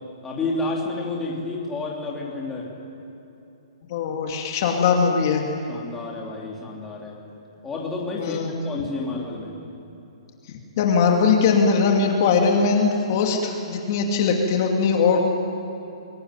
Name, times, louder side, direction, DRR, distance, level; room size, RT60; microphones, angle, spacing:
voice 1, 0.2-2.7 5.7-7.2 7.6-9.6, left 3 dB, 10° left, -3 dB, 2.9 m, -30 dB
voice 2, 3.9-5.4 8.2-8.5 10.8-15.2, left 5 dB, 35° left, 1 dB, 2.5 m, -20 dB
26.5 x 22.0 x 9.9 m, 2.8 s
hypercardioid pair, 175°, 3 cm